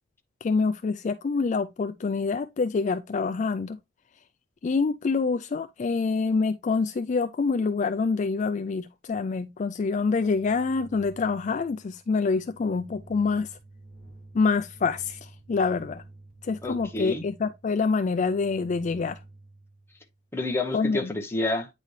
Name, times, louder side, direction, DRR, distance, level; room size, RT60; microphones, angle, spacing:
voice 1, 0.4-3.8 4.6-13.6 14.3-16.0 16.4-19.2 20.7-21.1, left 4 dB, 40° left, 0.3 m, -26 dB
sound 1, 9.7-20.3, right 2 dB, 45° right, 3.3 m, -50 dB
voice 2, 16.6-17.2 20.3-21.7, left 2 dB, 15° left, 0.9 m, -29 dB
9.2 x 4.1 x 3.2 m
head